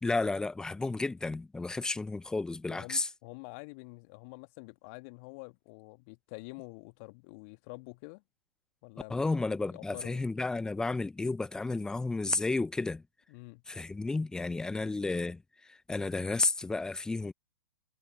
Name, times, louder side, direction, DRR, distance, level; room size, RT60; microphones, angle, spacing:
voice 1, 0.0-3.1 9.1-13.0 13.7-15.4 15.7-17.3, left 3 dB, 5° left, 1.3 m, -32 dB
voice 2, 2.7-8.2 8.8-10.2 13.3-13.6, left 32 dB, 35° left, 2.0 m, -47 dB
figure-of-eight pair, 115°, 12 cm